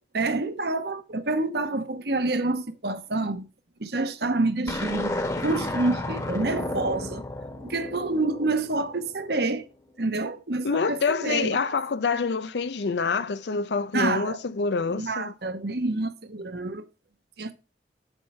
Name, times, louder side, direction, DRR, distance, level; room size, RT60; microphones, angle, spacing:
voice 1, 0.1-3.4 3.8-7.2 7.6-9.7 10.0-11.8 13.9-14.4 14.9-16.9 17.4-17.5, right 2 dB, 60° right, 1.1 m, -28 dB
sound 1, 4.7-9.1, left 1 dB, 20° left, 1.5 m, -32 dB
voice 2, 10.6-15.3, left 4 dB, 70° left, 0.5 m, -26 dB
9.0 x 7.2 x 3.2 m
head